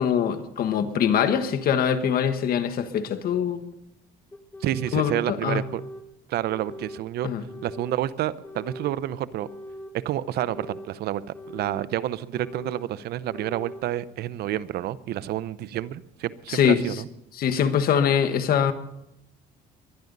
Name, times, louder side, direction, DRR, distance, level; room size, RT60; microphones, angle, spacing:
voice 1, 0.0-3.6 4.9-5.6 7.2-7.4 16.5-16.8 17.3-18.7, left 8 dB, 60° left, 1.4 m, -23 dB
sound 1, 2.3-2.4 3.3-3.4 4.3-5.1 5.5-6.1 6.5-7.1 7.5-8.0 8.4-9.0 9.4-10.0 10.4-10.9 11.3-11.9 12.3-12.9 13.3-13.9, left 1 dB, 10° left, 1.5 m, -41 dB
voice 2, 4.6-5.8 6.3-7.3 7.6-9.5 9.9-11.2 11.5-17.1, right 13 dB, 70° right, 0.7 m, -29 dB
22.5 x 11.0 x 4.0 m
cardioid pair, 110°, 17 cm